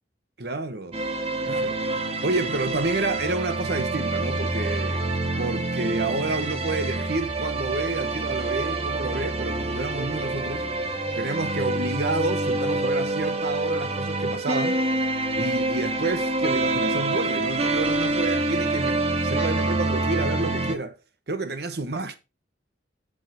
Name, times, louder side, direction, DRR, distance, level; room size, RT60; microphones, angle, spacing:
voice 1, 0.4-0.9 1.4-1.8 2.2-5.1 5.4-10.7 11.2-14.8 15.4-21.0 21.3-22.2, right 2 dB, 60° right, 1.0 m, -29 dB
sound 1, 0.9-20.8, right 2 dB, 35° right, 1.3 m, -26 dB
10.5 x 3.6 x 6.1 m
head